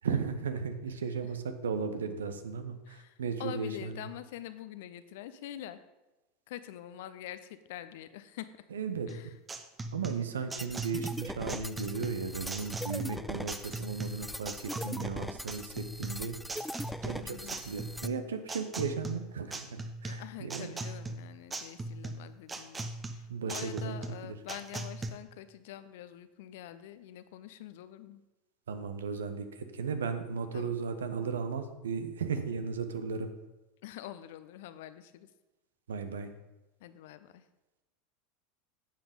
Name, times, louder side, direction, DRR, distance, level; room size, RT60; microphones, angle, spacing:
voice 1, 0.0-4.0 8.7-9.1 9.9-16.4 17.0-20.8 23.3-24.3 28.7-33.3 35.9-36.3, right 5 dB, 70° right, 9 dB, 1.0 m, -36 dB
voice 2, 2.9-5.8 6.5-8.5 9.1-9.3 17.1-17.6 20.0-28.2 30.5-30.7 33.8-35.3 36.8-37.4, left 12 dB, 60° left, 13 dB, 0.7 m, -45 dB
sound 1, 9.1-25.1, right 2 dB, 15° right, 1.0 m, -39 dB
sound 2, 10.6-18.1, equal, ahead, 0.3 m, -41 dB
10.5 x 7.8 x 5.2 m, 1.1 s
figure-of-eight pair, 80°, 0 cm